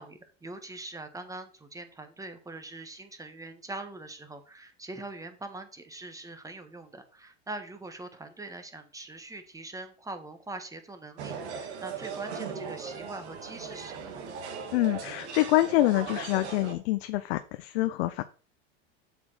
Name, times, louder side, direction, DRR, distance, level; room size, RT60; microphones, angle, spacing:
voice 1, 0.0-14.3, right 2 dB, 10° right, 8 dB, 1.3 m, -43 dB
sound 1, 11.2-16.7, right 6 dB, 85° right, 1.7 m, -38 dB
voice 2, 14.7-18.2, left 17 dB, 75° left, 10 dB, 0.7 m, -26 dB
7.3 x 6.0 x 4.5 m, 0.36 s
supercardioid pair, 110°, 33 cm